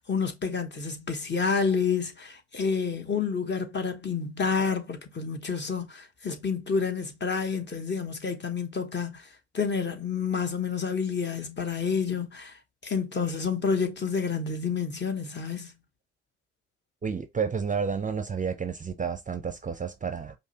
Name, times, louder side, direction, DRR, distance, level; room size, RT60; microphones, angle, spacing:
voice 1, 0.0-9.3 9.5-12.6 12.8-15.7, left 5 dB, 35° left, 1.0 m, -29 dB
voice 2, 17.0-20.3, right 6 dB, 25° right, 0.5 m, -30 dB
5.2 x 2.1 x 2.7 m
hypercardioid pair, 50°, 33 cm